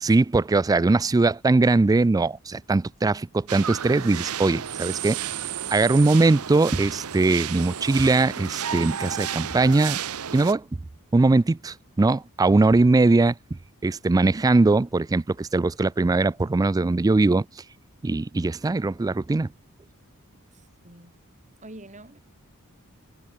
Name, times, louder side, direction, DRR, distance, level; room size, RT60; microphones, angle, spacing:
voice 1, 0.0-5.2 5.7-10.0 10.3-10.6 11.1-13.3 13.8-17.5 18.0-19.5, right 3 dB, 15° right, 0.3 m, -21 dB
sound 1, 3.5-10.5, right 9 dB, 80° right, 0.9 m, -32 dB
voice 2, 20.5-21.2 21.6-22.2, right 1 dB, 35° right, 6.9 m, -46 dB
head